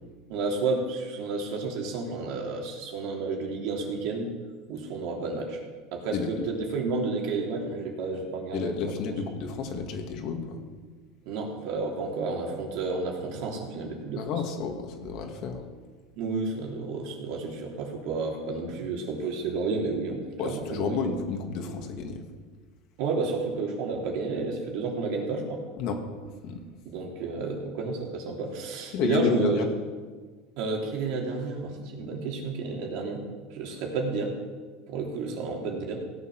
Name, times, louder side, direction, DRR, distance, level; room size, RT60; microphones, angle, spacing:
voice 1, 0.3-4.3 4.7-5.6 5.9-9.1 11.2-14.3 16.2-21.0 23.0-25.6 26.8-29.6 30.6-33.2 33.5-34.3 34.9-36.0, right 4 dB, 65° right, 0 dB, 3.2 m, -31 dB
voice 2, 6.1-6.5 8.5-10.6 14.1-15.7 20.4-22.2 25.8-26.0 26.4-26.6 28.9-29.7, left 5 dB, 55° left, 4 dB, 2.3 m, -31 dB
17.0 x 8.0 x 6.2 m, 1.4 s
supercardioid pair, 130°, 0 cm